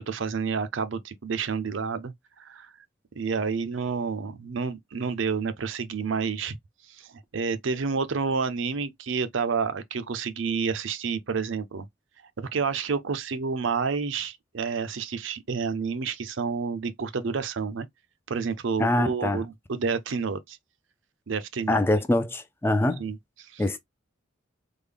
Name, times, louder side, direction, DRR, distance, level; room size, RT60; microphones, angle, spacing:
voice 1, 0.0-2.7 3.1-6.6 6.9-11.9 12.4-17.9 18.3-20.6 21.3-21.8 23.0-23.7, right 5 dB, 70° right, 0.5 m, -29 dB
voice 2, 18.8-19.4 21.7-23.0 23.6-23.8, left 1 dB, 10° left, 0.3 m, -24 dB
3.6 x 2.1 x 3.3 m
head